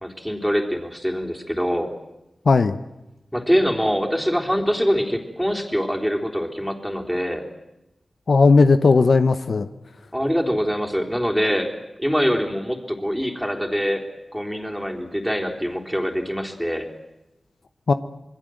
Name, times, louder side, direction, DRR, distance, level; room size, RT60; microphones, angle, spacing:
voice 1, 0.0-1.9 3.3-7.4 10.1-11.7 12.0-14.0 14.3-16.9, equal, ahead, 1 dB, 3.7 m, -24 dB
voice 2, 2.4-2.8 8.3-9.7 17.9-18.0, left 4 dB, 70° left, 11 dB, 0.9 m, -16 dB
27.0 x 22.0 x 7.8 m, 0.94 s
wide cardioid pair, 85°, 0 cm